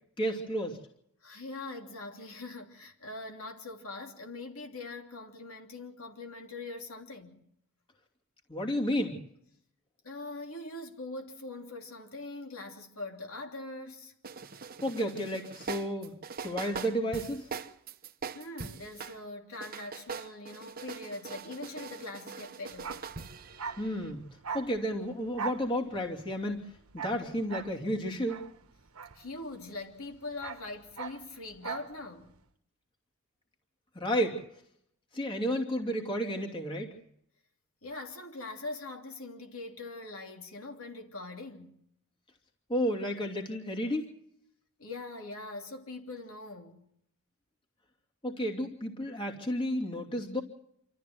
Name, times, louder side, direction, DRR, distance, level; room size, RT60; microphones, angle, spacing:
voice 1, 0.2-0.8 8.5-9.2 14.8-16.1 16.4-17.5 23.8-24.2 24.5-26.6 26.9-28.4 33.9-34.4 35.1-36.9 42.7-44.1 48.2-50.4, equal, 20° left, 2.7 m, -32 dB
voice 2, 1.2-7.4 10.0-14.1 18.3-23.0 29.1-32.3 37.8-41.8 44.8-46.8, left 2 dB, 70° left, 3.1 m, -42 dB
sound 1, 14.2-19.2 19.5-24.1, right 5 dB, 40° right, 1.0 m, -42 dB
Bark, 22.7-29.8 30.0-32.4, right 6 dB, 75° right, 1.2 m, -41 dB
27.0 x 13.5 x 7.7 m
head